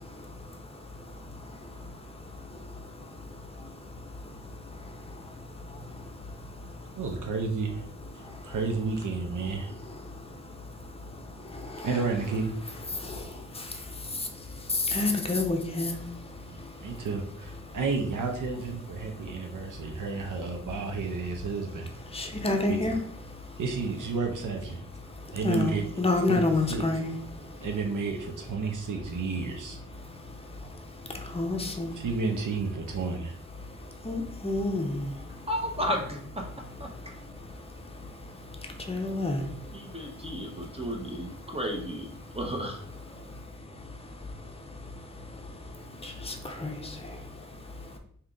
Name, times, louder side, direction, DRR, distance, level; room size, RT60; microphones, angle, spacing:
voice 1, 7.0-7.9 8.4-9.7 11.8-12.5 16.5-21.9 22.7-23.0 23.6-24.8 25.3-25.8 26.3-26.4 26.7-26.8 27.6-29.8 31.9-33.4, right 4 dB, 85° right, 0.7 m, -31 dB
voice 2, 14.9-16.0 22.1-23.0 25.4-27.1 31.3-31.9 34.1-35.0 38.9-39.5 46.6-46.7, left 2 dB, 20° left, 0.6 m, -27 dB
voice 3, 35.5-36.4 36.8-36.9 39.7-42.8, equal, 20° right, 0.7 m, -33 dB
3.6 x 2.8 x 3.7 m
wide cardioid pair, 150°, 30 cm